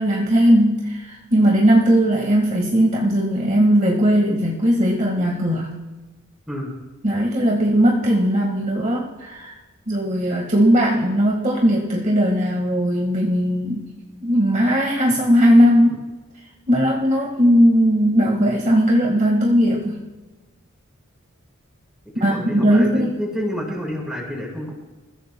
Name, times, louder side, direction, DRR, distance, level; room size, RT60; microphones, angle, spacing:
voice 1, 0.0-5.8 7.0-9.5 9.9-13.9 14.2-16.0 16.7-20.0 22.2-23.2, equal, 35° right, -2 dB, 1.8 m, -18 dB
voice 2, 22.1-24.7, equal, ahead, -3 dB, 4.8 m, -29 dB
28.5 x 15.5 x 2.3 m, 1.2 s
head